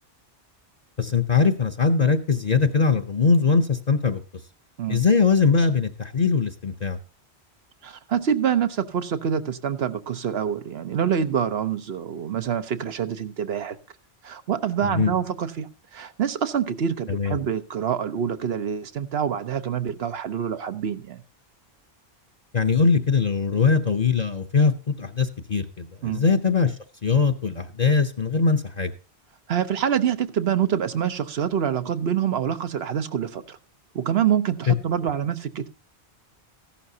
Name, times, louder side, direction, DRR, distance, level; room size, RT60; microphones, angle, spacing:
voice 1, 1.0-4.2 4.9-7.0 14.8-15.1 17.1-17.4 22.5-24.7 25.0-26.8 27.0-28.9, left 5 dB, 45° left, 6 dB, 0.8 m, -21 dB
voice 2, 7.8-13.8 14.2-21.2 26.0-26.2 29.5-33.6 33.9-35.7, right 8 dB, 70° right, 11 dB, 1.1 m, -26 dB
15.0 x 11.5 x 2.8 m, 0.35 s
omnidirectional pair, 1.1 m